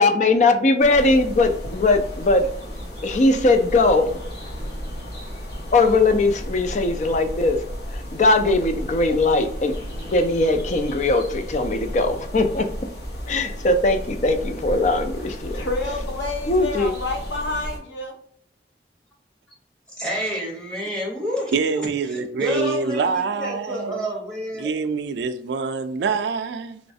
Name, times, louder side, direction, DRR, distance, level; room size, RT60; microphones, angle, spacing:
voice 1, 0.0-2.5 3.0-4.2 5.7-7.6 8.1-9.7 10.1-12.7 13.3-15.7 16.5-16.9, left 2 dB, 40° left, 0.4 m, -20 dB
sound 1, 0.8-17.8, equal, 65° left, 1.0 m, -33 dB
voice 2, 15.5-18.1, left 2 dB, 90° left, 0.8 m, -29 dB
voice 3, 20.0-24.7, equal, 5° left, 0.9 m, -29 dB
voice 4, 21.5-24.1 24.6-26.8, right 5 dB, 75° right, 0.3 m, -25 dB
3.1 x 3.1 x 2.7 m
head